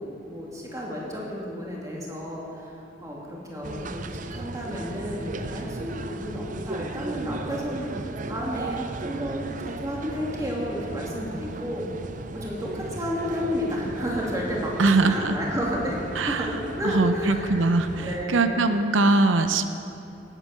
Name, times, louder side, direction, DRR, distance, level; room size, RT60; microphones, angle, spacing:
voice 1, 0.0-2.7 3.0-11.8 12.3-18.6, equal, 15° right, -4 dB, 2.5 m, -32 dB
sound 1, 3.6-18.3, right 2 dB, 40° right, 0.5 m, -36 dB
voice 2, 14.8-15.3 16.2-16.5 16.9-19.6, right 3 dB, 80° right, 9 dB, 0.7 m, -22 dB
17.5 x 9.0 x 6.6 m, 2.8 s
head